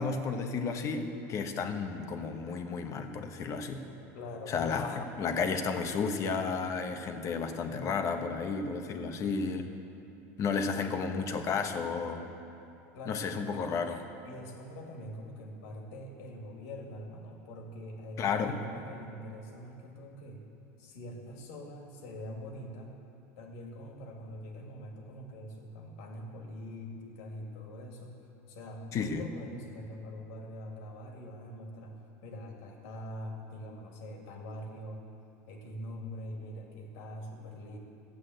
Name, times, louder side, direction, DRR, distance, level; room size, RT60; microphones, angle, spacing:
voice 1, 0.0-3.8 4.5-9.7 10.4-12.2 13.1-14.0 18.2-18.6 28.9-29.2, left 5 dB, 40° left, 6 dB, 1.2 m, -32 dB
voice 2, 4.1-4.8 12.9-13.5 14.2-20.4 20.8-22.9 23.4-28.2 28.5-35.1 35.5-37.8, equal, 70° left, 1 dB, 2.5 m, -44 dB
13.5 x 8.4 x 8.0 m, 2.8 s
supercardioid pair, 120°, 8 cm